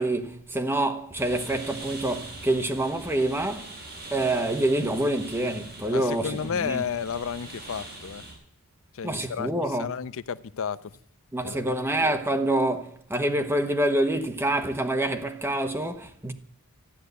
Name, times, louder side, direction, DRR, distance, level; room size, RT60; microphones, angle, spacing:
voice 1, 0.0-3.7 4.1-6.8 9.0-9.9 11.3-16.3, right 1 dB, 10° right, 1.0 m, -26 dB
sound 1, 1.1-8.3, right 2 dB, 45° right, 4.6 m, -42 dB
voice 2, 5.9-8.2 8.9-10.9 11.4-11.8, left 7 dB, 65° left, 0.5 m, -32 dB
13.5 x 9.7 x 8.0 m
head